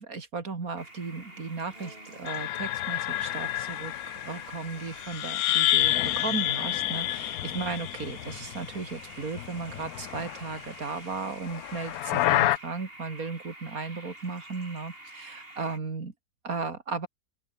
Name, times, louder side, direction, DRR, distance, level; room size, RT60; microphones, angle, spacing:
voice 1, 0.0-3.9 4.2-16.1 16.4-17.1, right 4 dB, 60° right, 3.2 m, -35 dB
sound 1, 0.8-15.8, right 1 dB, 35° right, 7.1 m, -48 dB
sound 2, 2.3-8.9 9.2-10.6 11.5-12.6, left 15 dB, 75° left, 1.0 m, -29 dB
open air
omnidirectional pair, 1.7 m